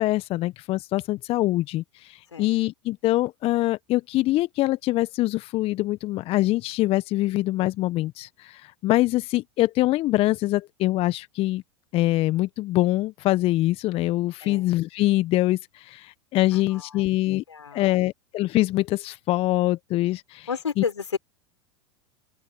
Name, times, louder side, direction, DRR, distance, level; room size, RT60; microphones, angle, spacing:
voice 1, 0.0-11.6 11.9-17.4 17.7-20.5 20.8-20.9, left 17 dB, 40° left, 1.2 m, -24 dB
voice 2, 16.5-17.8 20.5-21.2, left 6 dB, 80° left, 5.6 m, -32 dB
open air
figure-of-eight pair, 85°, 15 cm